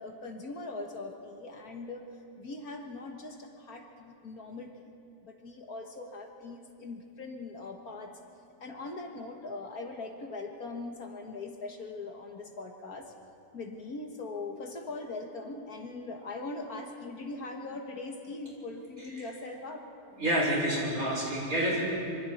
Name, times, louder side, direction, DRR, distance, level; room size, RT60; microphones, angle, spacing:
voice 1, 0.0-2.1 2.4-4.9 5.2-8.2 8.6-13.1 13.5-19.9, left 3 dB, 60° left, 3 dB, 1.9 m, -41 dB
voice 2, 20.2-21.8, right 1 dB, 50° right, -5 dB, 6.6 m, -28 dB
25.5 x 25.0 x 4.4 m, 2.5 s
omnidirectional pair, 1.9 m